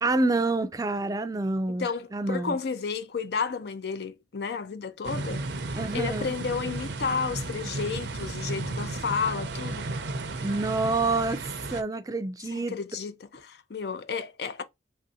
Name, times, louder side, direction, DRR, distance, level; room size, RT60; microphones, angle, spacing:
voice 1, 0.0-2.6 5.7-6.3 10.4-12.7, right 2 dB, 20° right, 0.4 m, -27 dB
voice 2, 1.7-5.4 5.9-9.9 12.5-14.6, left 5 dB, 65° left, 0.5 m, -32 dB
sound 1, 5.0-11.8, right 2 dB, 75° right, 0.6 m, -34 dB
3.5 x 2.6 x 2.4 m
head